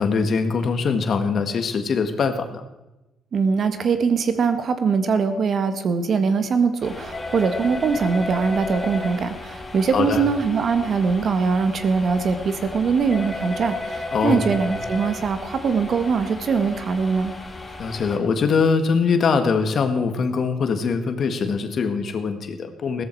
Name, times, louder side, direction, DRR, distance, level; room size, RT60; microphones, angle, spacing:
voice 1, 0.0-2.6 9.9-10.2 14.1-14.4 17.8-23.0, left 5 dB, 55° left, 8 dB, 1.7 m, -22 dB
voice 2, 3.3-17.3, right 5 dB, 55° right, 9 dB, 1.5 m, -22 dB
sound 1, 6.8-18.2, left 2 dB, 25° left, 3.6 m, -33 dB
16.0 x 13.5 x 4.6 m, 0.99 s
cardioid pair, 90°, 0 cm